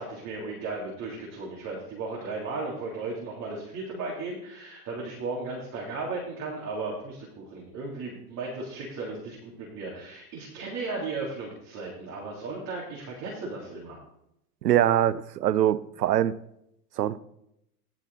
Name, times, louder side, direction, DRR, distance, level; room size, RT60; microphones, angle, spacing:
voice 1, 0.0-14.0, right 3 dB, 35° right, 3.5 m, -35 dB
voice 2, 14.6-16.4 17.0-17.2, right 11 dB, 80° right, 0.8 m, -23 dB
17.0 x 6.1 x 4.1 m
hypercardioid pair, 105°, 47 cm